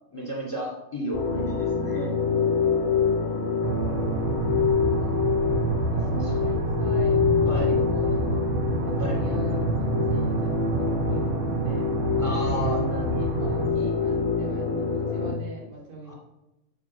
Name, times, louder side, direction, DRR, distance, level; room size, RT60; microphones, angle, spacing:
voice 1, 0.1-2.1 6.1-6.5 7.5-7.7 9.0-9.2 12.2-12.8 15.7-16.1, equal, 10° left, -1 dB, 2.2 m, -33 dB
sound 1, 1.1-15.3, left 5 dB, 35° left, 1.4 m, -26 dB
voice 2, 3.0-3.7 4.6-7.2 7.7-8.4 8.8-11.9 12.4-16.2, right 3 dB, 90° right, -3 dB, 4.8 m, -40 dB
sound 2, 3.6-13.7, right 3 dB, 75° right, 2.4 m, -28 dB
8.8 x 8.6 x 6.3 m, 0.96 s
omnidirectional pair, 4.0 m